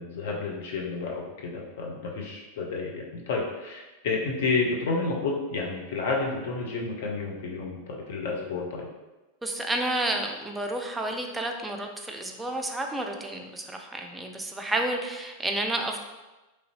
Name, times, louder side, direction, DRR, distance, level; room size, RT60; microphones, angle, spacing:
voice 1, 0.0-8.9, left 3 dB, 55° left, 0 dB, 0.6 m, -30 dB
voice 2, 9.4-16.0, right 1 dB, 10° right, 3 dB, 0.4 m, -30 dB
3.0 x 2.6 x 3.0 m, 1.1 s
figure-of-eight pair, 90°, 0 cm